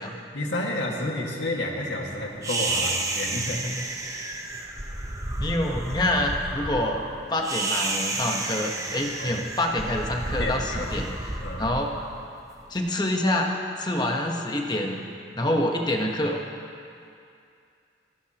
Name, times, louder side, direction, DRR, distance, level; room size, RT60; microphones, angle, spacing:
voice 1, 0.3-3.7 9.2-9.4 10.3-11.6, left 1 dB, 85° left, -1 dB, 1.9 m, -31 dB
sound 1, 2.4-12.8, right 2 dB, 15° right, 0.8 m, -31 dB
voice 2, 5.4-7.0 7.3-11.1 11.6-11.9 12.7-13.5 13.8-15.0 15.4-16.4, left 1 dB, 25° left, 1 dB, 1.1 m, -26 dB
27.0 x 11.5 x 3.0 m, 2.5 s
head